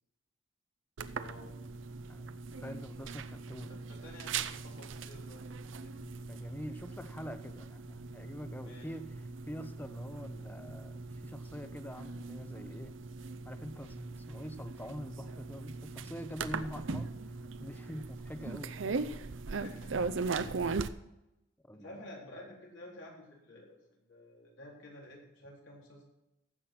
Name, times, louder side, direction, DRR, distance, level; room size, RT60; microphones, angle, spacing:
sound 1, 1.0-20.9, right 4 dB, 85° right, 0.6 m, -40 dB
voice 1, 1.1-1.5 3.7-6.3 8.6-8.9 19.5-20.1 21.7-23.8 24.1-26.0, left 1 dB, 80° left, -2 dB, 3.9 m, -51 dB
voice 2, 2.0-3.8 5.6-13.0 13.4-19.2 21.6-22.1, equal, 10° left, 10 dB, 0.7 m, -45 dB
15.0 x 5.9 x 5.9 m, 0.90 s
head